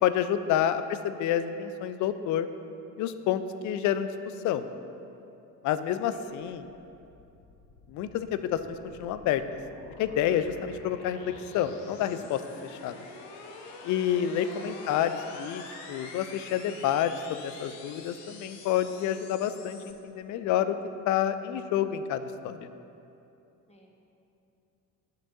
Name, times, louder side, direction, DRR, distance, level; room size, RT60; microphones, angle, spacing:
voice 1, 0.0-2.5 3.0-4.1 4.4-4.6 5.6-6.7 7.9-9.4 10.0-13.0 13.8-20.8 21.1-22.7, left 10 dB, 40° left, 12 dB, 0.5 m, -29 dB
sound 1, 6.7-19.9, left 4 dB, 60° left, 1.1 m, -47 dB
voice 2, 14.1-14.4 23.7-24.0, equal, 15° left, -1 dB, 1.5 m, -54 dB
19.5 x 6.6 x 2.7 m, 2.8 s
figure-of-eight pair, 50°, 48 cm